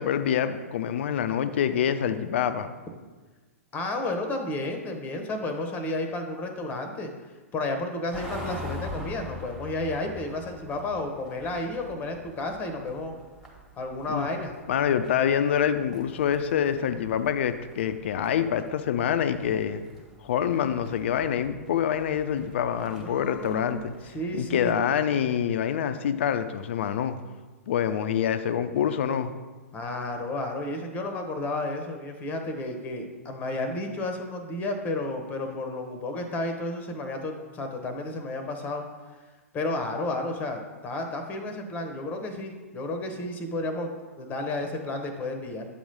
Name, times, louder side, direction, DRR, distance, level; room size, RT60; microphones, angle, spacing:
voice 1, 0.0-2.7 14.1-14.3 14.7-19.8 20.2-23.9 24.3-27.1 27.7-29.3, left 9 dB, 50° left, 10 dB, 0.5 m, -26 dB
voice 2, 3.7-7.1 7.5-13.1 13.8-14.5 22.9-24.7 29.7-38.8 39.5-45.7, left 2 dB, 20° left, 5 dB, 0.8 m, -32 dB
sound 1, 8.1-24.9, left 1 dB, 5° right, 1.3 m, -45 dB
8.4 x 3.1 x 5.3 m, 1.3 s
figure-of-eight pair, 105°, 8 cm